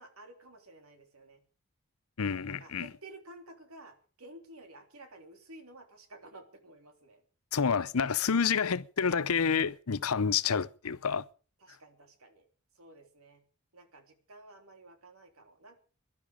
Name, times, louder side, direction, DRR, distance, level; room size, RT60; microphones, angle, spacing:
voice 1, 0.0-1.4 2.4-7.2 10.0-10.3 11.6-12.5 12.7-13.4 13.7-15.8, right 2 dB, 85° right, 3.4 m, -53 dB
voice 2, 2.2-2.9 7.5-11.2, left 6 dB, 85° left, 0.7 m, -28 dB
21.0 x 12.0 x 5.1 m
head